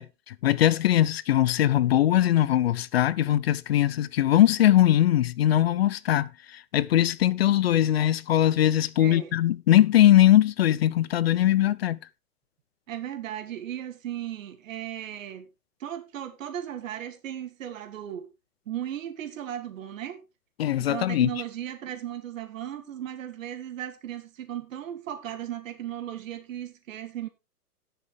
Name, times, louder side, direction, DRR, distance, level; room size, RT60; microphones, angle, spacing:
voice 1, 0.0-12.0 20.6-21.3, left 12 dB, 40° left, 0.6 m, -21 dB
voice 2, 9.0-9.4 12.9-15.5 15.8-18.3 18.7-20.2 20.8-27.3, right 11 dB, 55° right, 2.7 m, -36 dB
18.5 x 6.6 x 3.4 m
hypercardioid pair, 135°, 47 cm